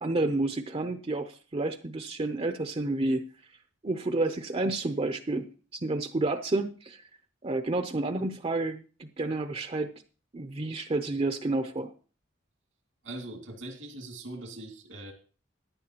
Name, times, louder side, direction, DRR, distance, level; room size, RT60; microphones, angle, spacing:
voice 1, 0.0-3.2 3.8-5.5 5.7-7.0 7.4-9.9 10.3-11.9, right 2 dB, 30° right, 8 dB, 0.6 m, -30 dB
voice 2, 13.0-15.1, right 2 dB, 85° right, 3 dB, 2.3 m, -41 dB
14.5 x 10.5 x 2.9 m, 0.38 s
head